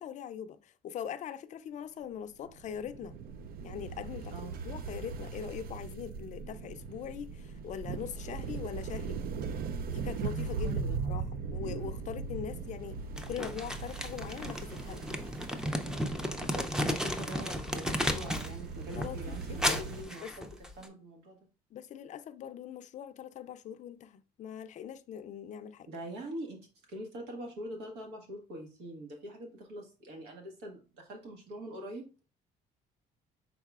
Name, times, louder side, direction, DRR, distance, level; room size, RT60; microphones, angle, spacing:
voice 1, 0.0-3.2 3.6-9.2 9.9-13.0 13.3-15.1 18.9-19.9 20.2-20.3 21.7-25.9, left 9 dB, 45° left, 0.4 m, -42 dB
sound 1, 2.5-20.0, right 5 dB, 60° right, 0.4 m, -39 dB
voice 2, 10.6-11.0 16.5-21.4 25.9-32.3, right 1 dB, 90° right, 1.5 m, -44 dB
Crumpling crinkling, 13.2-18.6 18.9-20.9, equal, 5° right, 0.5 m, -34 dB
5.5 x 3.9 x 2.4 m
cardioid pair, 110°, 17 cm